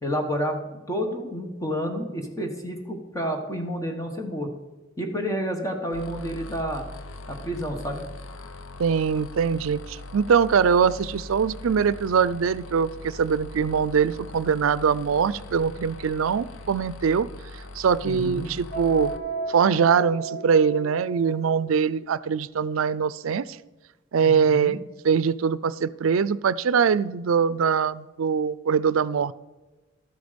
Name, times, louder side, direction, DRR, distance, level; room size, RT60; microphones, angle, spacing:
voice 1, 0.0-4.5 5.0-6.8 7.3-8.0 18.0-18.5 24.2-24.8, equal, 15° left, 3 dB, 1.4 m, -30 dB
sound 1, 5.9-19.2, left 2 dB, 90° left, 0.8 m, -41 dB
voice 2, 8.8-17.3 17.5-19.1 19.5-23.6 24.1-24.8 25.0-29.3, right 6 dB, 90° right, 18 dB, 0.4 m, -22 dB
sound 2, 18.7-21.5, right 2 dB, 55° left, 2.0 m, -33 dB
12.5 x 9.4 x 5.2 m, 1.2 s
head